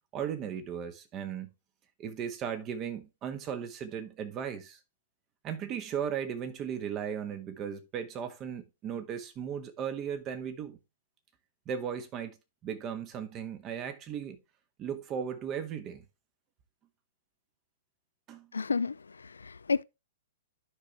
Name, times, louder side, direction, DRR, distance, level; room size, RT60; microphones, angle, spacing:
voice 1, 0.1-1.5 2.0-4.8 5.4-10.8 11.7-12.4 12.6-14.4 14.8-16.0 18.3-18.5, right 8 dB, 30° right, 1.3 m, -36 dB
voice 2, 18.5-19.8, left 4 dB, 85° left, 0.3 m, -31 dB
11.5 x 5.2 x 3.3 m
hypercardioid pair, 115°, 0 cm